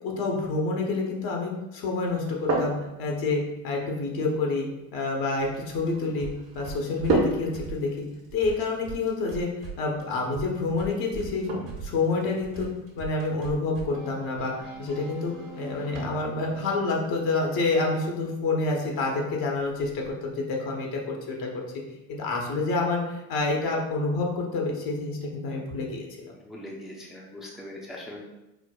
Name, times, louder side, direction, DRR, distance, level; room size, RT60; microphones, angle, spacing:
voice 1, 0.0-4.7 4.9-6.3 6.5-8.0 8.3-11.5 11.8-12.7 13.0-21.6 22.1-26.3, left 3 dB, 55° left, 0 dB, 0.8 m, -28 dB
sound 1, 2.0-20.1, right 2 dB, 35° right, 0.8 m, -36 dB
sound 2, 5.4-9.7 10.0-17.2, right 4 dB, 55° right, 1.2 m, -42 dB
voice 2, 26.4-28.2, left 1 dB, ahead, -3 dB, 0.5 m, -41 dB
4.6 x 2.1 x 2.2 m, 0.97 s
supercardioid pair, 90°, 43 cm